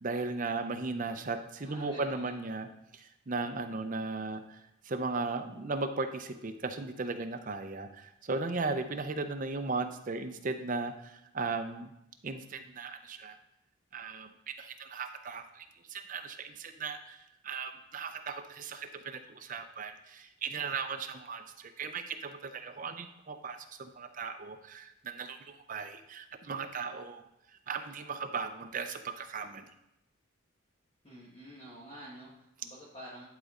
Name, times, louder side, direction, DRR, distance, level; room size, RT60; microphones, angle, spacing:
voice 1, 0.0-2.7 2.9-4.6 4.9-11.9 12.2-13.4 13.9-17.2 17.4-27.2 27.7-29.6, right 4 dB, 40° right, 7 dB, 0.5 m, -37 dB
voice 2, 1.6-2.4 31.0-33.2, right 1 dB, 25° left, -7 dB, 1.5 m, -49 dB
11.5 x 4.1 x 3.7 m, 0.82 s
head